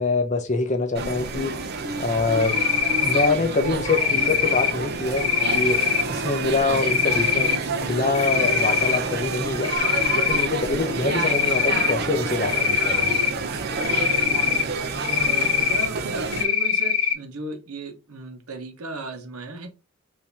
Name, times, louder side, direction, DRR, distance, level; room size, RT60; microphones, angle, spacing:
voice 1, 0.0-1.7 2.0-2.6 3.0-7.5 7.8-9.7 10.1-13.1, left 3 dB, 35° left, 0.7 m, -25 dB
sound 1, 0.9-16.4, right 4 dB, 45° right, 0.6 m, -28 dB
Cricket, 2.4-3.3 3.9-4.7 5.2-6.0 6.7-7.6 8.0-9.0 9.3-10.5 11.1-11.9 12.4-13.3 13.8-14.6 15.0-15.9 16.3-17.1, left 6 dB, 75° left, 1.0 m, -22 dB
voice 2, 15.0-19.7, right 2 dB, 85° right, 1.1 m, -36 dB
4.7 x 2.8 x 3.4 m
head